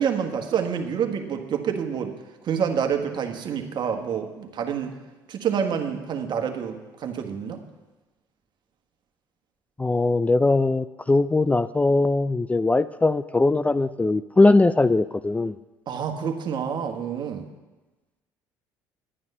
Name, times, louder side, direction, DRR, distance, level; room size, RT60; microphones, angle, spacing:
voice 1, 0.0-2.1 2.4-4.9 5.3-7.6 15.9-17.4, right 7 dB, 55° right, 5 dB, 1.5 m, -27 dB
voice 2, 9.8-15.6, left 2 dB, 15° left, 14 dB, 0.4 m, -20 dB
11.0 x 9.5 x 5.5 m, 1.2 s
hypercardioid pair, 65°, 9 cm